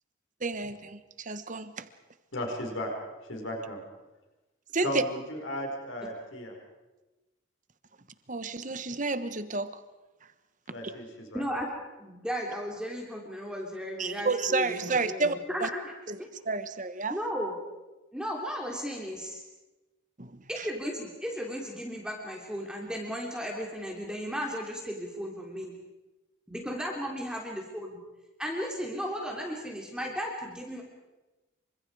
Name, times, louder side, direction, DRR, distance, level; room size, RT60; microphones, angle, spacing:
voice 1, 0.4-1.9 4.7-5.0 8.3-9.8 14.0-15.3 15.6-15.7 16.1-16.2 16.4-17.2 20.2-20.7, right 3 dB, 35° right, 11 dB, 1.3 m, -30 dB
voice 2, 2.3-2.9 3.3-3.8 4.8-6.5 10.7-11.4, equal, 60° left, 1 dB, 5.2 m, -35 dB
voice 3, 11.3-11.7 12.0-15.9 16.2-16.3 17.1-17.5 18.1-19.4 20.5-25.7 26.5-28.0 28.4-30.8, equal, 5° right, -1 dB, 3.3 m, -35 dB
28.0 x 25.5 x 4.9 m, 1.1 s
head